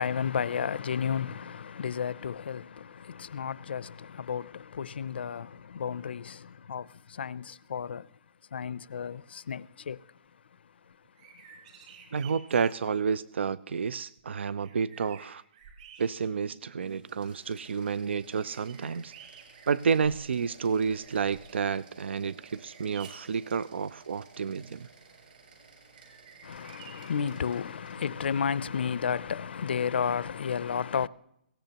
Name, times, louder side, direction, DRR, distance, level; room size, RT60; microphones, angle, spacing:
voice 1, 0.0-8.1 8.5-10.1 26.4-31.1, left 7 dB, 65° left, 0.5 m, -32 dB
sound 1, 11.0-12.8 14.2-14.3 14.6-16.5 17.1-17.2 18.4-20.4 20.8-21.7 22.4-23.5 25.9-27.3, right 7 dB, 40° right, 3.8 m, -52 dB
voice 2, 12.1-15.4 16.0-19.1 19.7-24.9, right 6 dB, 80° right, 0.5 m, -30 dB
sound 2, 16.7-28.5, right 5 dB, 55° right, 6.1 m, -55 dB
22.5 x 17.5 x 2.9 m
hypercardioid pair, 175°, 6 cm